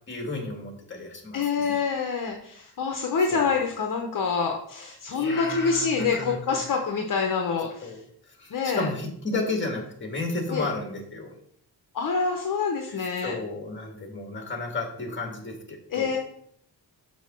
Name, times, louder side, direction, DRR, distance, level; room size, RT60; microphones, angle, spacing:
voice 1, 0.1-1.8 3.3-3.5 5.1-6.6 7.8-8.0 8.4-11.3 12.9-16.1, left 2 dB, 30° left, 2 dB, 1.6 m, -33 dB
voice 2, 1.3-8.0 8.5-8.9 10.5-10.7 11.9-13.3 15.9-16.2, left 5 dB, 55° left, 2 dB, 0.8 m, -26 dB
6.3 x 3.7 x 6.0 m, 0.67 s
wide cardioid pair, 165°, 38 cm